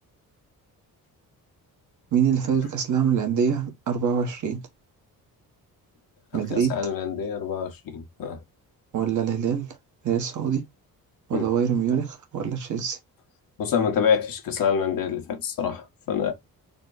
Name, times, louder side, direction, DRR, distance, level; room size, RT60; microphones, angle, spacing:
voice 1, 2.1-4.6 6.3-6.7 8.9-9.7 10.0-10.6 11.3-13.0, right 7 dB, 55° right, 1.2 m, -24 dB
voice 2, 6.5-8.4 11.3-11.5 13.6-16.3, left 7 dB, 70° left, 1.4 m, -26 dB
4.1 x 2.2 x 3.9 m
cardioid pair, 140°, 36 cm